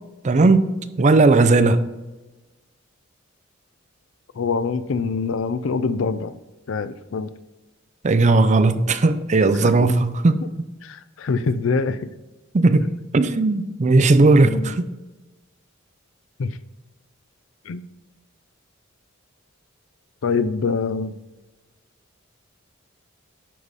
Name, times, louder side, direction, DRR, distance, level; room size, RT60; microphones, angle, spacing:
voice 1, 0.2-1.8 8.0-10.4 12.5-14.9, right 3 dB, 35° right, 0.5 m, -17 dB
voice 2, 4.4-6.4 6.7-7.3 9.5-9.9 10.4-10.5 10.8-12.0 14.4-14.8 16.4-16.6 17.7-17.9 20.2-21.2, left 4 dB, 70° left, 0.4 m, -25 dB
10.0 x 4.1 x 4.7 m
head